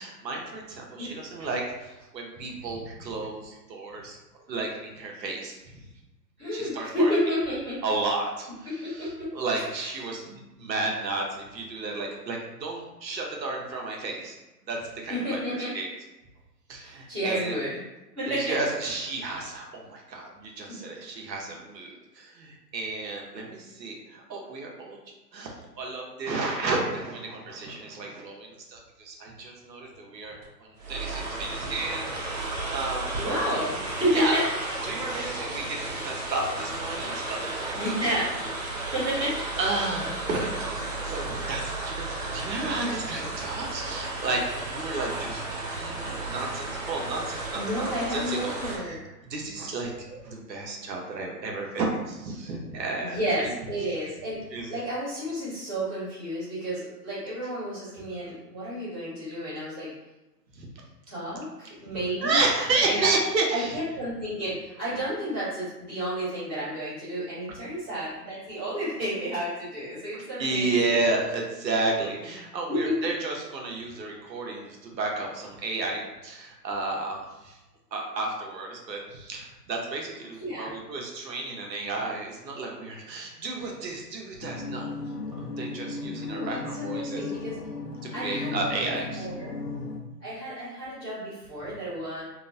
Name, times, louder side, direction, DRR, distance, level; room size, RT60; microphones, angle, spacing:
voice 1, 0.0-4.2 4.5-5.8 6.5-7.1 7.8-14.4 14.7-15.9 16.7-17.6 18.3-25.0 25.3-32.3 32.7-33.2 34.1-34.4 34.8-37.9 39.6-40.5 41.0-48.6 48.8-49.0 49.2-53.5 53.9-54.0 54.5-54.7 60.5-60.7 62.2-63.8 70.1-77.6 77.9-84.9 85.3-87.2 88.0-89.3, right 3 dB, 85° right, 0 dB, 0.8 m, -32 dB
voice 2, 6.4-7.8 8.8-9.3 15.1-15.7 16.8-17.7 18.1-18.6 20.7-20.8 33.1-34.4 37.7-38.3 38.9-39.4 40.3-40.4 47.5-49.0 53.0-59.9 61.1-62.4 62.8-63.1 63.5-70.9 72.7-73.1 80.4-80.7 86.0-87.6 88.1-88.7 89.2-89.6 90.2-92.2, equal, 5° right, -18 dB, 0.5 m, -31 dB
sound 1, 30.4-30.5 30.8-48.8, right 2 dB, 50° right, 0.7 m, -33 dB
sound 2, 84.4-90.0, left 3 dB, 75° left, 0.6 m, -36 dB
2.9 x 2.0 x 2.5 m, 1.0 s
hypercardioid pair, 150°, 49 cm